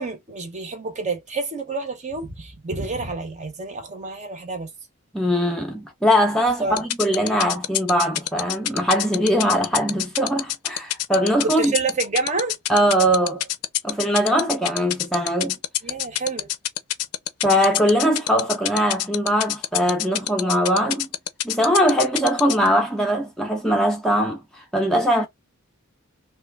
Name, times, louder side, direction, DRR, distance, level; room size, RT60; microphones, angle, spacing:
voice 1, 0.0-4.7 6.6-6.8 11.4-12.5 15.8-16.5, right 3 dB, 30° right, 0.8 m, -28 dB
voice 2, 5.1-11.7 12.7-13.5 13.8-15.6 17.4-21.1 21.4-25.3, equal, ahead, 0.5 m, -21 dB
sound 1, 6.8-22.7, left 13 dB, 85° left, 0.5 m, -24 dB
3.1 x 2.3 x 3.4 m
head